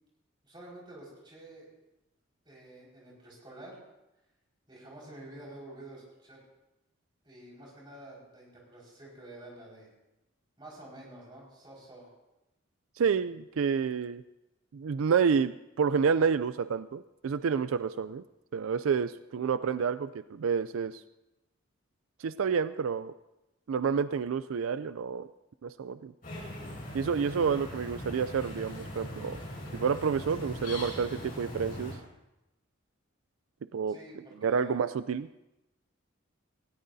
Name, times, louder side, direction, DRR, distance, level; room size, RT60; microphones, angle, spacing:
voice 1, 0.4-1.7 2.4-3.8 4.7-6.4 7.2-9.9 10.6-12.1 27.3-27.4 33.9-34.8, right 1 dB, 25° right, -4 dB, 5.1 m, -49 dB
voice 2, 13.0-14.2 14.7-18.2 18.5-21.0 22.2-23.1 23.7-25.3 25.6-26.1 26.9-29.4 29.7-32.0 33.7-34.0 34.4-35.3, right 6 dB, 85° right, 13 dB, 0.4 m, -29 dB
sound 1, 26.2-31.9, left 1 dB, 40° left, 5.3 m, -40 dB
19.0 x 17.0 x 2.7 m, 0.95 s
head